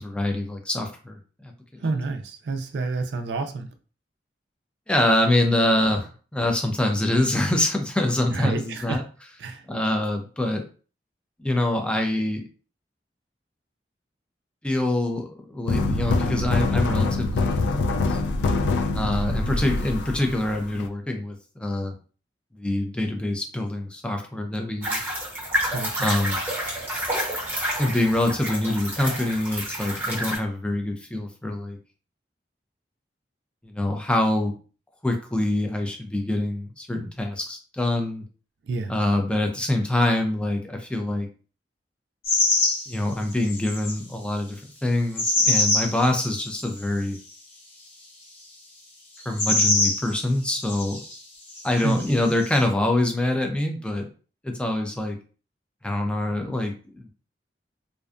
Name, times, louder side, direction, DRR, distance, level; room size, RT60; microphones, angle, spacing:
voice 1, 0.0-1.8 4.9-9.0 9.7-10.6 11.4-12.4 14.6-18.2 18.9-21.9 22.6-25.1 26.0-26.4 27.8-31.8 33.6-34.5 35.0-38.2 38.9-41.3 42.9-47.2 49.3-51.0 51.6-54.1 54.4-55.2 55.8-57.1, left 1 dB, 5° left, 3 dB, 0.4 m, -25 dB
voice 2, 1.8-3.7 8.3-9.0 9.4-9.6 25.7-26.1 38.7-38.9 51.8-52.4, right 3 dB, 70° right, 6 dB, 0.4 m, -29 dB
sound 1, 15.7-20.9, left 3 dB, 75° left, 0.3 m, -24 dB
sound 2, 24.8-30.4, equal, 15° right, 0.9 m, -29 dB
sound 3, 42.2-42.9 43.3-44.0 45.2-46.7 49.2-50.1 50.6-51.2 51.5-52.6, left 2 dB, 35° left, 0.9 m, -23 dB
2.5 x 2.2 x 2.4 m, 0.38 s
head